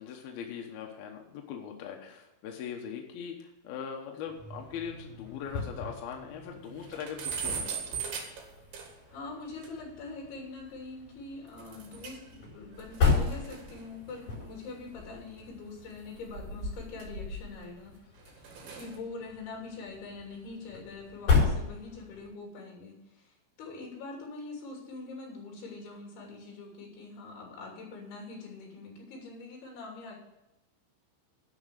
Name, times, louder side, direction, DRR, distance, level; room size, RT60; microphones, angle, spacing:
voice 1, 0.0-8.0, left 7 dB, 75° left, 1 dB, 2.3 m, -41 dB
sound 1, 4.2-22.3, left 5 dB, 40° left, 5.9 m, -35 dB
sound 2, 4.8-4.9 5.3-5.4 5.7-5.8 6.1-6.2 6.6-9.2 9.6-9.7 11.6-12.3 12.6-15.3 16.1-17.7 18.2-19.0, right 4 dB, 60° right, 3.1 m, -40 dB
voice 2, 9.1-17.9 18.3-30.2, left 3 dB, 55° left, -1 dB, 4.7 m, -44 dB
11.5 x 6.0 x 8.1 m, 0.92 s
omnidirectional pair, 5.9 m